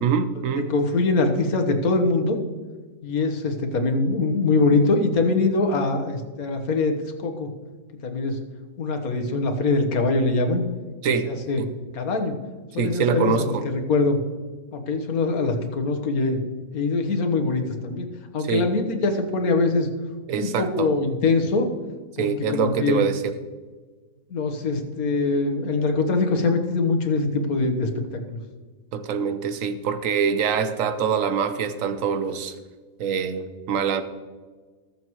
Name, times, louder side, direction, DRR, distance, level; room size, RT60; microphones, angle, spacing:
voice 1, 0.0-0.7 11.0-11.3 11.6-11.7 12.8-13.6 18.5-18.7 20.3-20.9 22.2-23.3 28.9-32.5 33.0-34.0, right 6 dB, 65° right, 10 dB, 1.2 m, -24 dB
voice 2, 0.7-2.4 3.0-7.5 8.0-8.4 8.8-10.6 11.3-11.6 11.9-12.3 12.7-14.2 14.7-16.4 16.7-19.9 20.4-21.7 22.2-23.0 24.3-28.4, left 3 dB, 75° left, 5 dB, 1.7 m, -23 dB
20.0 x 7.2 x 3.1 m, 1.4 s
omnidirectional pair, 1.6 m